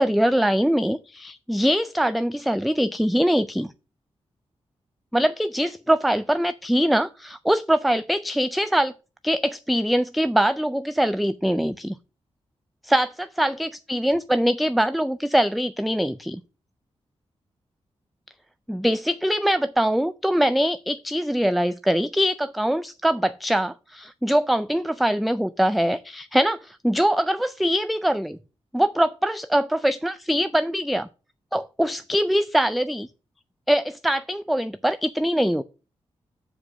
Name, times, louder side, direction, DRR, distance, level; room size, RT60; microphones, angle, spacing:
voice 1, 0.0-3.7 5.1-8.9 9.2-12.0 12.8-16.4 18.7-28.4 28.7-31.1 31.5-33.1 33.7-35.6, equal, ahead, 0.3 m, -23 dB
7.4 x 4.5 x 6.0 m
wide cardioid pair, 115°, 11 cm